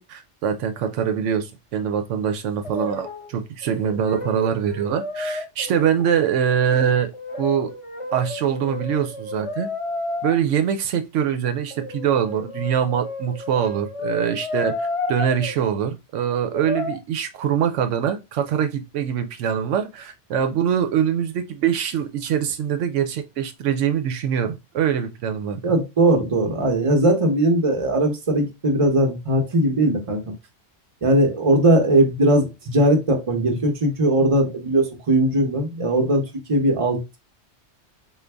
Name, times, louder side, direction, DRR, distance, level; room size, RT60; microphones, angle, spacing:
voice 1, 0.0-7.1 7.4-7.7 8.1-9.7 10.2-25.6, right 8 dB, 85° right, 0.9 m, -23 dB
Brass instrument, 2.6-3.3 3.6-6.1 7.1-10.3 11.7-15.5 16.5-17.0, left 2 dB, 35° left, 0.6 m, -31 dB
voice 2, 25.6-30.3 31.0-36.2 36.5-37.2, right 1 dB, 30° right, 0.8 m, -19 dB
3.8 x 2.4 x 3.4 m
omnidirectional pair, 1.2 m